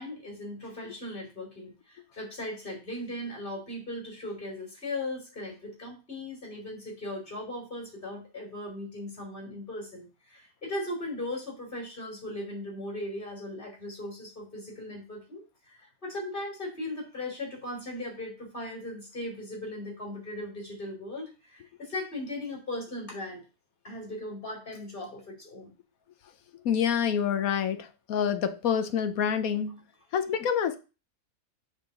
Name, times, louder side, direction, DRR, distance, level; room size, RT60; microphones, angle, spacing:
voice 1, 0.0-15.4 15.7-23.4 23.8-25.7, left 1 dB, 35° left, 3.6 m, -38 dB
voice 2, 26.6-29.8 30.1-30.8, left 8 dB, 75° left, 1.2 m, -27 dB
6.8 x 3.8 x 6.5 m
omnidirectional pair, 1.5 m